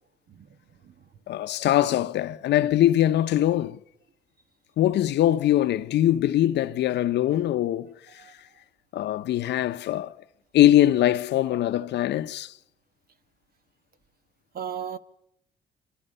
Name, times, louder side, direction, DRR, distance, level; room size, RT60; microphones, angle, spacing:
voice 1, 0.3-1.1 8.2-8.3 14.5-15.0, right 8 dB, 55° right, 1.5 m, -37 dB
voice 2, 1.3-3.8 4.8-8.3 8.9-10.1 10.5-12.5, left 13 dB, 70° left, 0.8 m, -22 dB
27.5 x 26.0 x 5.6 m
supercardioid pair, 55°, 18 cm